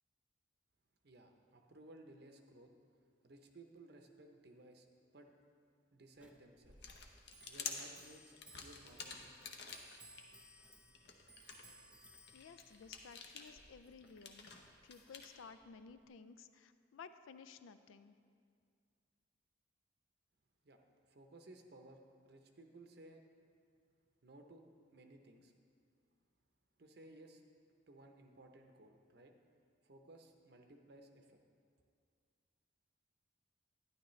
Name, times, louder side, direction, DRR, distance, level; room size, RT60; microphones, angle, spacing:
voice 1, 1.0-2.7 3.2-4.9 5.1-5.3 5.9-6.9 7.5-9.6 20.6-20.8 21.1-23.2 24.2-24.7 24.9-25.5 26.8-27.4 27.9-29.3 29.8-31.4, right 1 dB, 55° right, 4 dB, 0.7 m, -59 dB
Clock, 6.2-16.1, right 2 dB, 5° right, 0.4 m, -63 dB
sound 1, 6.6-10.2 10.7-15.3, left 5 dB, 55° left, 0.8 m, -50 dB
voice 2, 12.3-14.5 14.8-18.2, left 5 dB, 85° left, 12 dB, 0.4 m, -56 dB
11.5 x 10.5 x 3.1 m, 2.2 s
head